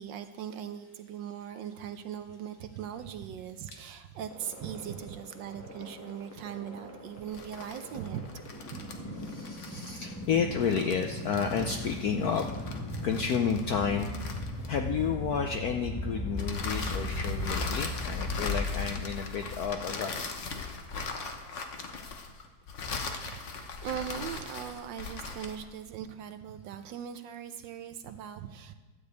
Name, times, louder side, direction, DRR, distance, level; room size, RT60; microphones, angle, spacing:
voice 1, 0.0-9.3 9.7-9.8 23.2-23.4 23.8-28.7, right 9 dB, 75° right, 9 dB, 1.2 m, -40 dB
sound 1, 4.3-19.4, left 1 dB, 10° left, 0.8 m, -38 dB
voice 2, 4.5-5.1 7.4-7.7 8.9-12.8 13.0-14.1 14.7-20.1 21.8-21.9, left 7 dB, 70° left, 4 dB, 0.9 m, -32 dB
sound 2, 7.2-15.0 16.4-25.7, left 4 dB, 50° left, 1.0 m, -40 dB
12.0 x 5.1 x 8.1 m, 1.3 s
omnidirectional pair, 2.2 m